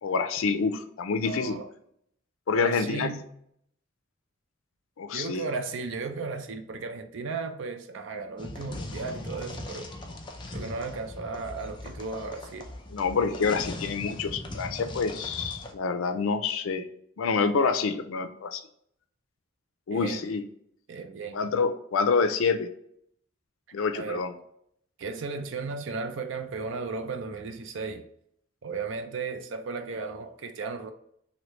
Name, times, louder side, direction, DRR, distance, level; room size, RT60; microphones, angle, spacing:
voice 1, 0.0-1.6 2.5-3.1 5.0-5.5 12.9-16.9 17.2-18.6 19.9-20.4 21.3-22.7 23.7-24.3, left 5 dB, 85° left, 9 dB, 0.4 m, -27 dB
voice 2, 1.2-1.7 2.5-3.2 5.1-9.9 10.5-12.7 19.9-20.3 20.9-21.4 23.9-24.2 25.0-28.0 28.6-30.9, right 4 dB, 70° right, 7 dB, 0.4 m, -35 dB
sound 1, 8.4-15.7, left 1 dB, 25° left, 0.4 m, -39 dB
3.2 x 2.7 x 3.0 m, 0.71 s
head